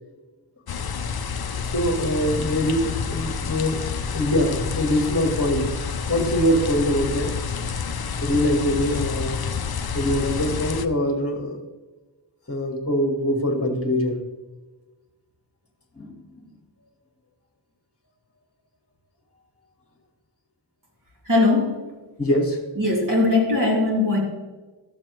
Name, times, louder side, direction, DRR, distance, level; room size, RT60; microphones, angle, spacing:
sound 1, 0.7-10.9, left 6 dB, 50° left, 0.6 m, -29 dB
voice 1, 1.6-3.8 4.1-5.7 6.1-7.3 8.2-9.4 9.9-11.6 12.5-14.2 16.0-16.1 22.2-22.6, equal, 30° left, 3 dB, 1.7 m, -23 dB
voice 2, 21.3-21.8 22.8-24.2, left 2 dB, 40° right, -2 dB, 2.8 m, -20 dB
13.0 x 7.4 x 3.1 m, 1.2 s
wide cardioid pair, 45°, 48 cm